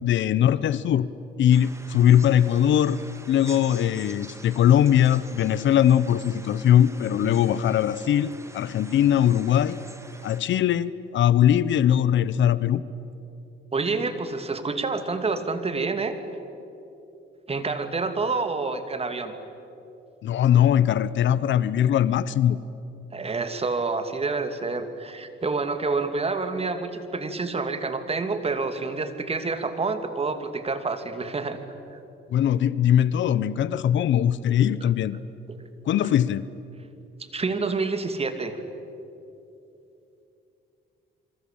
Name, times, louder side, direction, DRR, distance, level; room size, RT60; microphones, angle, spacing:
voice 1, 0.0-1.1 1.4-3.0 3.3-9.8 10.2-12.8 20.2-22.6 32.3-35.2 35.8-36.5, left 10 dB, 70° left, 17 dB, 0.9 m, -21 dB
sound 1, 1.5-10.4, right 2 dB, 15° right, 2.6 m, -47 dB
voice 2, 13.7-16.2 17.5-19.3 23.1-31.6 31.9-32.0 35.5-35.7 37.3-38.6, right 3 dB, 30° right, 9 dB, 2.6 m, -28 dB
27.0 x 24.5 x 8.8 m, 2.8 s
cardioid pair, 90°, 20 cm